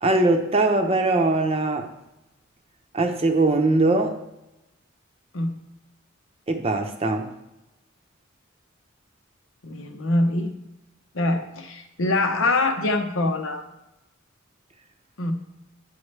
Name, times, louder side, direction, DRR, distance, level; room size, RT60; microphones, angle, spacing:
voice 1, 0.0-1.9 2.9-4.2 6.5-7.3, right 2 dB, 30° right, 4 dB, 0.7 m, -21 dB
voice 2, 9.6-10.5 11.1-13.6 15.2-15.3, left 2 dB, 75° left, 5 dB, 0.9 m, -24 dB
9.4 x 5.5 x 3.3 m, 0.94 s
head